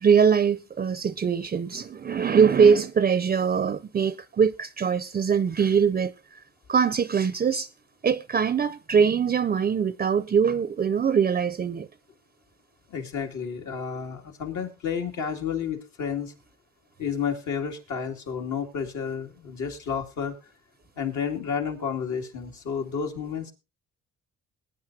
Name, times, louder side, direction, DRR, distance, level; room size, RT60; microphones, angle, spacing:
voice 1, 0.0-6.1 6.7-7.7 8.0-11.9, right 6 dB, 30° right, 0.5 m, -22 dB
voice 2, 12.9-16.3 17.0-20.4 21.0-23.5, left 7 dB, 70° left, 2.5 m, -31 dB
20.5 x 9.4 x 2.7 m
cardioid pair, 90°, 30 cm